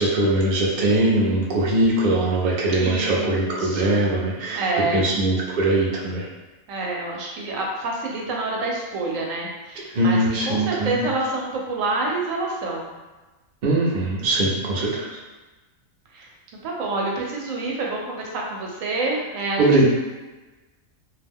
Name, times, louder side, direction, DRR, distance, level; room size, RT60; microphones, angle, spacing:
voice 1, 0.0-6.3 9.8-11.1 13.6-15.2 19.6-19.8, right 2 dB, 50° right, -3 dB, 0.5 m, -21 dB
voice 2, 2.8-4.2 4.5-5.1 6.7-10.2 10.5-12.9 16.1-16.3 16.6-19.6, right 2 dB, 80° right, -2 dB, 1.0 m, -27 dB
2.4 x 2.2 x 3.4 m, 1.2 s
omnidirectional pair, 1.4 m